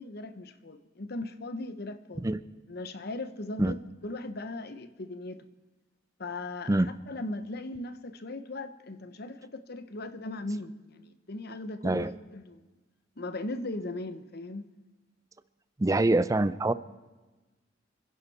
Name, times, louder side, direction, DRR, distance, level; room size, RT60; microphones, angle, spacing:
voice 1, 0.0-2.3 2.7-5.5 6.2-12.7 13.2-14.7, left 2 dB, 55° left, 1.0 m, -38 dB
voice 2, 15.8-16.7, right 2 dB, 15° right, 0.5 m, -24 dB
27.0 x 10.5 x 4.2 m
head